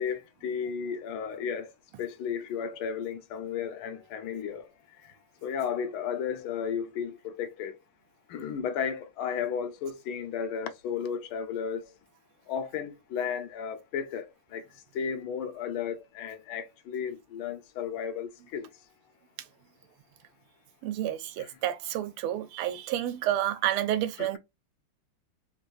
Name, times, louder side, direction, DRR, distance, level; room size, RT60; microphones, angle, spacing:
voice 1, 0.0-1.7 2.0-4.7 5.4-7.7 8.3-11.9 12.5-14.6 14.9-18.7 21.4-21.5 24.2-24.4, left 7 dB, 80° left, 1.4 m, -34 dB
voice 2, 20.8-24.4, right 12 dB, 90° right, 1.5 m, -30 dB
3.8 x 2.6 x 2.3 m
omnidirectional pair, 2.4 m